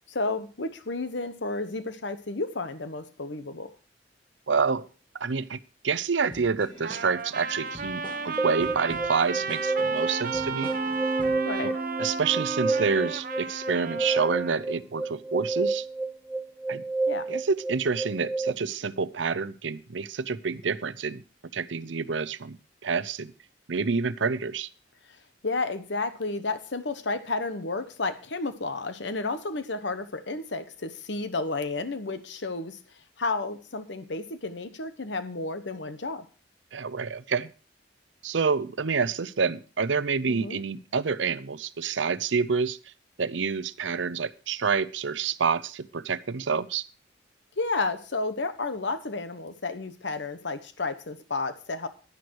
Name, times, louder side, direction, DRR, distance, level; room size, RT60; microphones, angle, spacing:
voice 1, 0.1-3.7 11.4-11.7 17.1-17.3 25.4-32.8 33.2-36.2 40.3-40.6 47.6-51.9, left 3 dB, 70° left, 11 dB, 1.1 m, -31 dB
voice 2, 4.5-4.8 5.2-5.6 5.8-10.7 11.6-11.7 12.0-15.8 16.7-16.8 17.3-21.2 21.5-22.6 22.8-23.3 23.7-24.7 36.7-37.5 38.2-42.8 43.2-46.8, right 5 dB, 80° right, 16 dB, 0.7 m, -28 dB
sound 1, 6.3-11.5, equal, 25° left, 2.4 m, -46 dB
Trumpet, 6.8-14.6, right 5 dB, 50° right, 1.0 m, -34 dB
sound 2, 8.4-18.5, right 3 dB, 10° right, 0.6 m, -30 dB
11.0 x 10.5 x 4.7 m, 0.35 s
head